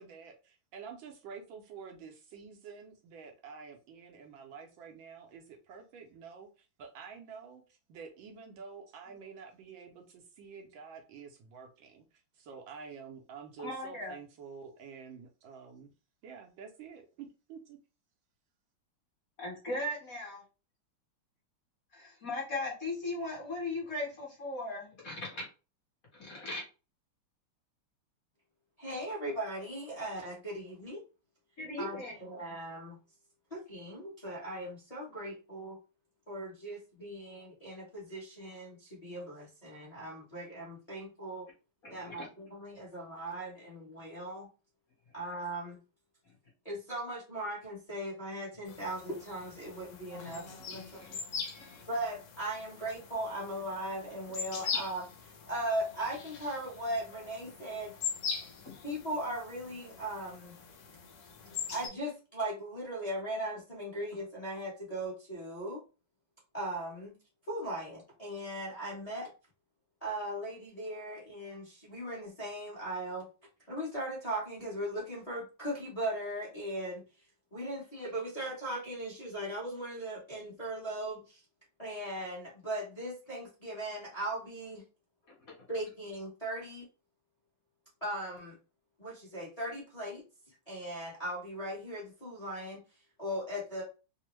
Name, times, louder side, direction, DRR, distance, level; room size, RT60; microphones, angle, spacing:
voice 1, 0.0-15.9 16.2-17.8, right 6 dB, 75° right, 2 dB, 1.3 m, -49 dB
voice 2, 13.6-14.1 19.4-20.4 21.9-25.5 26.1-26.6 31.6-32.1 41.8-42.3 50.5-51.8 58.6-58.7 85.3-85.4, left 2 dB, 45° left, -4 dB, 1.5 m, -38 dB
voice 3, 28.8-31.0 31.8-33.0 33.5-35.8 36.3-41.5 41.9-44.5 45.1-45.8 46.6-51.2 51.9-57.9 58.8-60.6 61.7-65.8 66.5-67.1 67.5-69.3 70.0-73.3 73.7-77.0 77.5-81.4 81.8-84.8 85.7-86.9 88.0-88.6 89.0-92.8 93.2-93.8, right 1 dB, 30° left, -5 dB, 0.8 m, -38 dB
sound 1, 48.7-61.9, left 6 dB, 70° left, 1.2 m, -42 dB
3.4 x 2.1 x 3.0 m, 0.32 s
omnidirectional pair, 2.3 m